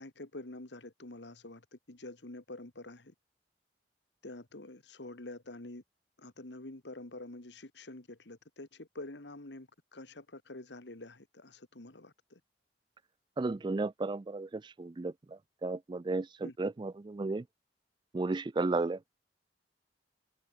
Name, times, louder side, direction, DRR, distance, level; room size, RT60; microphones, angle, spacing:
voice 1, 0.0-3.1 4.2-5.8 6.2-12.4 16.4-16.5, left 2 dB, 90° left, 2.0 m, -47 dB
voice 2, 13.4-17.5 18.1-19.0, right 3 dB, 25° right, 0.4 m, -34 dB
head